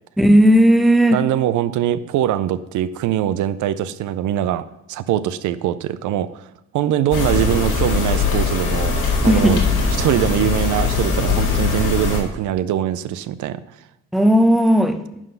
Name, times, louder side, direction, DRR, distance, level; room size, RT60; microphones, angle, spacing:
voice 1, 0.2-1.2 9.3-9.6 14.1-15.2, equal, ahead, 9 dB, 0.7 m, -14 dB
voice 2, 1.1-6.4 6.7-8.9 9.2-9.6 10.0-13.6, right 11 dB, 75° right, 14 dB, 0.5 m, -22 dB
sound 1, 7.1-12.2, left 4 dB, 80° left, 2.1 m, -20 dB
11.0 x 3.9 x 5.5 m, 0.82 s
cardioid pair, 90°, 30 cm